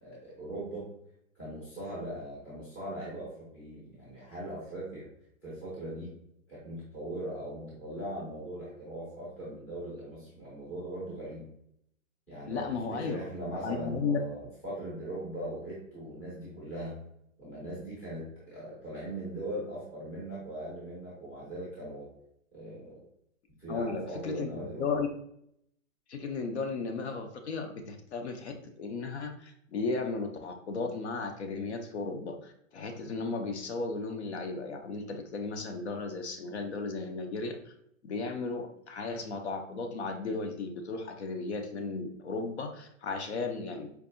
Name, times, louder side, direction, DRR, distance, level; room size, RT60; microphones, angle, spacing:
voice 1, 0.0-0.9 1.3-5.1 5.4-6.1 6.5-11.4 12.3-17.0 17.4-22.1 22.5-23.0 23.6-25.0, right 1 dB, 5° left, -9 dB, 0.6 m, -40 dB
voice 2, 12.5-13.2 13.6-14.2 23.7-25.1 26.1-37.7 38.0-43.9, left 4 dB, 60° left, 4 dB, 0.6 m, -35 dB
4.6 x 2.6 x 2.5 m, 0.73 s
hypercardioid pair, 165°, 39 cm